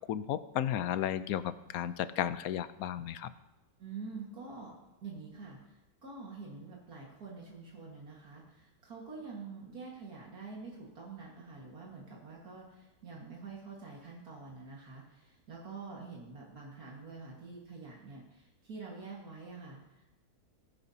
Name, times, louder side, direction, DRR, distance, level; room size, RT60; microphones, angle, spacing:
voice 1, 0.1-3.3, left 10 dB, 75° left, 14 dB, 1.1 m, -34 dB
voice 2, 3.8-4.7 5.0-20.0, right 4 dB, 80° right, -3 dB, 2.3 m, -47 dB
18.5 x 10.5 x 2.8 m, 1.0 s
omnidirectional pair, 1.6 m